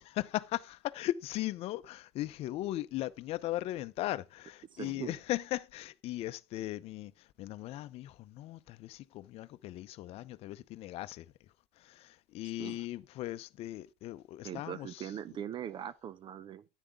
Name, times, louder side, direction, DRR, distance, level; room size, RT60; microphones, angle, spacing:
voice 1, 0.1-11.3 11.8-15.1, left 15 dB, 55° left, 0.7 m, -38 dB
voice 2, 4.7-5.1 12.6-12.8 14.4-16.7, right 9 dB, 40° right, 0.6 m, -41 dB
10.0 x 9.1 x 3.6 m
supercardioid pair, 100°, 13 cm